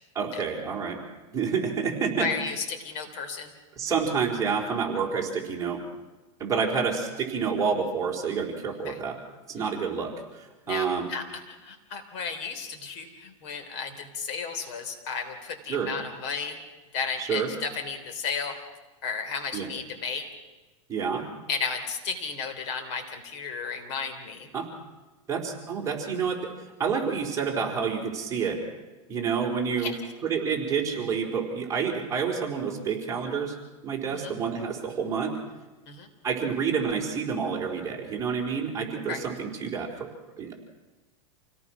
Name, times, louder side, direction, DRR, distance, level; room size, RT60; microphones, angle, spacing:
voice 1, 0.1-1.0 1.3-2.3 3.8-5.8 6.4-9.2 9.5-11.1 15.7-15.9 17.2-17.5 19.5-19.7 20.9-21.3 24.5-24.7 25.3-26.4 26.8-28.6 29.1-29.9 30.2-33.6 33.8-35.4 36.2-40.1 40.4-40.5, right 6 dB, 20° right, -1 dB, 4.1 m, -28 dB
voice 2, 2.2-3.5 8.8-9.0 10.7-16.6 16.9-18.6 19.0-20.3 21.5-24.5 29.8-30.0 34.1-34.3 35.9-36.1 39.1-39.2, left 5 dB, 55° left, 7 dB, 3.4 m, -33 dB
28.0 x 18.0 x 6.1 m, 1.2 s
supercardioid pair, 140°, 18 cm